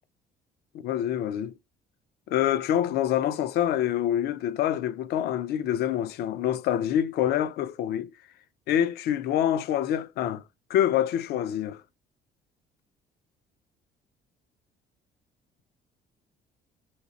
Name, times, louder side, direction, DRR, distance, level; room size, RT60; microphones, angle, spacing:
voice 1, 0.7-1.5 2.3-8.1 8.7-10.4 10.7-11.8, left 10 dB, 70° left, 0.5 m, -26 dB
3.0 x 2.8 x 4.0 m
cardioid pair, 110°, 17 cm